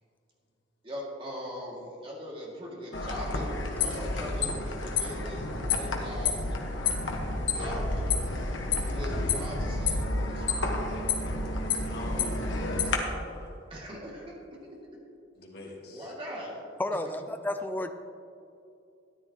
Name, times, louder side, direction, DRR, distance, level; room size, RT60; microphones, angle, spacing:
voice 1, 0.8-6.4 7.5-8.3 8.8-10.7 13.7-14.4 14.7-14.9 15.6-16.6, equal, 30° right, -3 dB, 2.1 m, -40 dB
sound 1, 2.9-13.0, left 3 dB, 80° left, 1.3 m, -30 dB
voice 2, 11.6-13.5 15.4-16.0, left 1 dB, 55° left, -2 dB, 2.0 m, -44 dB
voice 3, 16.8-17.9, left 1 dB, 10° left, 8 dB, 0.4 m, -31 dB
13.5 x 10.0 x 2.9 m, 2.6 s
head